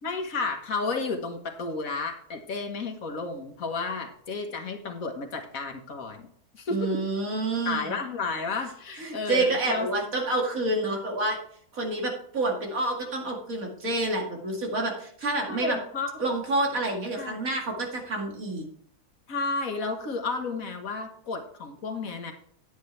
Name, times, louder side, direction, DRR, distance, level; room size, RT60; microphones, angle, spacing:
voice 1, 0.0-6.3 6.5-7.0 7.6-9.9 15.5-16.1 17.2-17.4 19.3-22.3, left 4 dB, 65° left, 5 dB, 1.8 m, -32 dB
voice 2, 6.7-7.9 9.0-11.4 11.7-15.8 16.2-18.6, right 2 dB, 65° right, 1 dB, 2.6 m, -28 dB
10.0 x 9.6 x 3.3 m, 0.63 s
omnidirectional pair, 1.6 m